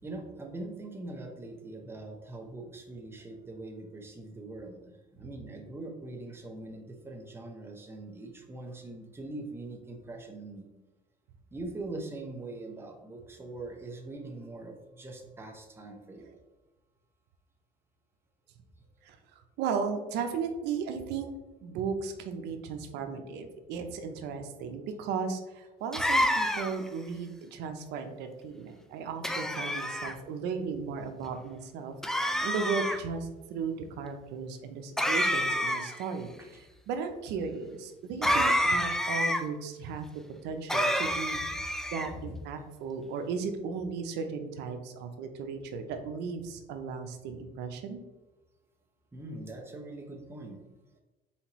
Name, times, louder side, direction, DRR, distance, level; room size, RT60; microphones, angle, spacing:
voice 1, 0.0-10.7 11.5-16.3 31.2-31.3 41.3-41.4 49.1-50.6, right 2 dB, 15° right, 2 dB, 0.8 m, -42 dB
voice 2, 19.0-21.3 21.6-40.1 40.4-41.4 41.9-48.0, right 5 dB, 85° right, 6 dB, 0.6 m, -36 dB
sound 1, 25.9-26.9 29.2-30.1 32.0-33.0 35.0-36.0 38.2-39.4 40.7-42.1, equal, 5° left, 0.3 m, -28 dB
4.3 x 4.0 x 3.0 m, 1.1 s
cardioid pair, 110°, 17 cm